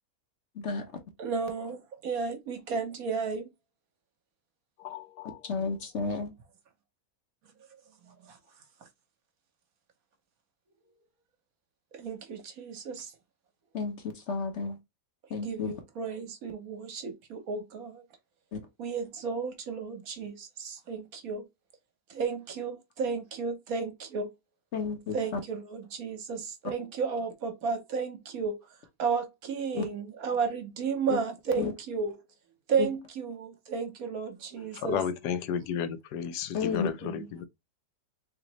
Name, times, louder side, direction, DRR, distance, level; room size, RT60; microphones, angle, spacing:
voice 1, 1.2-3.5 8.3-8.4 11.9-13.1 15.4-18.0 18.8-21.5 22.1-24.3 25.1-28.6 29.0-32.2 32.7-35.0 37.0-37.3, right 5 dB, 65° right, 1.3 m, -33 dB
voice 2, 4.8-5.5 34.7-37.4, left 8 dB, 85° left, 1.2 m, -33 dB
voice 3, 5.4-6.3 13.7-14.8 15.3-15.7 18.5-18.6 24.7-25.4 29.7-29.9 31.1-31.2 31.5-31.7 32.8-32.9 36.5-36.9, left 5 dB, 55° left, 1.0 m, -32 dB
3.7 x 3.3 x 3.0 m
omnidirectional pair, 1.7 m